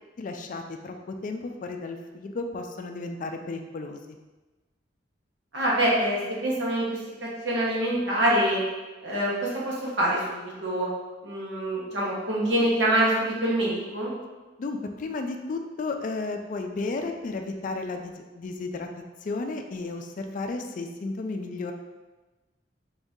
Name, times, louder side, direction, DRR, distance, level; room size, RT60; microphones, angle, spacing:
voice 1, 0.2-1.0 1.2-4.0 14.6-18.9 19.2-21.7, left 3 dB, 45° left, 5 dB, 0.3 m, -33 dB
voice 2, 5.5-6.9 7.4-8.6 9.0-10.9 11.2-14.1, right 1 dB, 75° right, -5 dB, 1.1 m, -25 dB
3.8 x 2.7 x 3.6 m, 1.2 s
head